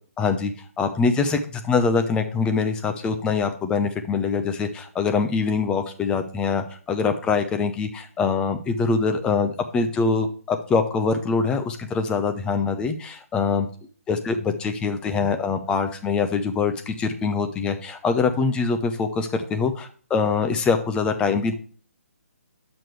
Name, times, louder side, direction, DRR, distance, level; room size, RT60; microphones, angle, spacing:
voice 1, 0.2-0.5 0.8-13.7 14.1-21.5, left 5 dB, 10° left, 7 dB, 0.7 m, -24 dB
9.0 x 6.2 x 3.2 m, 0.42 s
figure-of-eight pair, 135°, 8 cm